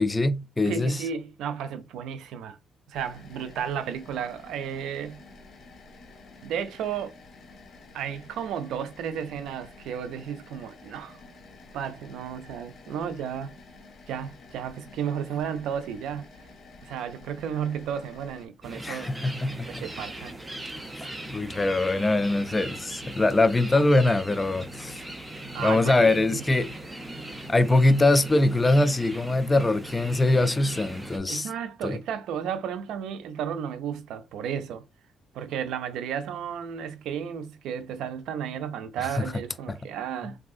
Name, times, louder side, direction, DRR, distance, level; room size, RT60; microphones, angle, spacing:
voice 1, 0.0-1.0 18.8-19.9 20.9-25.0 25.6-26.7 27.5-31.5 31.8-32.0 39.7-39.8, left 2 dB, 20° left, 0.3 m, -23 dB
voice 2, 0.7-2.6 2.9-5.2 6.4-7.2 7.9-11.2 11.7-13.5 14.1-16.3 16.8-19.1 19.7-20.4 25.5-26.4 31.3-34.8 35.3-40.4, right 8 dB, 85° right, 0.4 m, -33 dB
sound 1, 2.9-18.5, left 3 dB, 55° left, 1.4 m, -50 dB
sound 2, 18.6-31.2, right 1 dB, 10° right, 0.6 m, -39 dB
3.5 x 2.7 x 2.4 m
cardioid pair, 90°, 0 cm